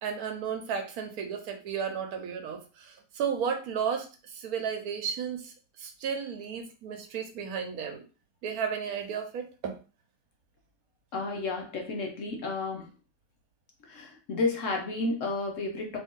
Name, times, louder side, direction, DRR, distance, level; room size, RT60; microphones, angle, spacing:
voice 1, 0.0-8.0 8.4-9.8, right 7 dB, 75° right, 5 dB, 1.2 m, -33 dB
voice 2, 11.1-12.9 13.8-16.0, left 3 dB, 60° left, 2 dB, 1.0 m, -31 dB
3.0 x 2.6 x 3.6 m, 0.34 s
omnidirectional pair, 1.6 m